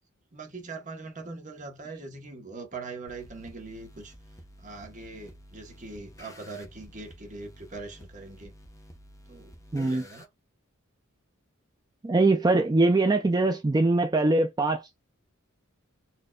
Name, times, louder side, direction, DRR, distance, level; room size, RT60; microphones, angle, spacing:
voice 1, 0.3-4.1 4.6-8.5 9.3-10.3, right 3 dB, 35° right, 1.2 m, -42 dB
sound 1, 3.1-10.2, equal, 15° left, 0.8 m, -51 dB
voice 2, 9.7-10.0 12.0-15.0, right 2 dB, 20° right, 0.4 m, -22 dB
4.2 x 2.8 x 2.3 m
head